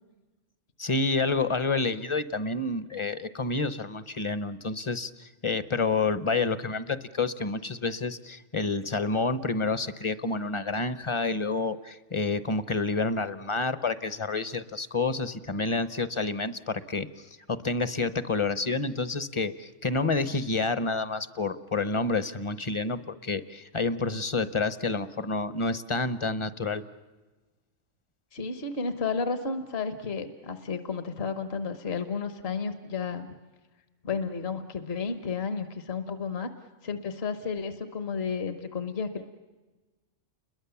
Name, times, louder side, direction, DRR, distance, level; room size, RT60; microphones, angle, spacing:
voice 1, 0.8-26.8, left 3 dB, 30° left, 13 dB, 0.8 m, -29 dB
voice 2, 28.3-33.3 34.0-36.5 36.8-39.3, left 5 dB, 60° left, 9 dB, 1.4 m, -32 dB
30.0 x 22.0 x 7.1 m, 1.2 s
omnidirectional pair, 1.2 m